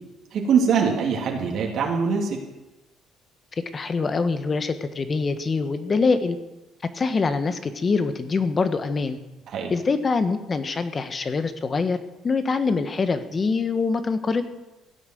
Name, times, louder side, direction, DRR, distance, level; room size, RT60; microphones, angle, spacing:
voice 1, 0.3-2.4 9.5-9.7, right 6 dB, 65° right, 0 dB, 2.8 m, -23 dB
voice 2, 3.7-6.4 6.9-9.2 9.7-12.0 12.2-14.4, left 4 dB, 35° left, 10 dB, 1.3 m, -24 dB
16.0 x 8.3 x 7.8 m, 1.0 s
cardioid pair, 95°, 0 cm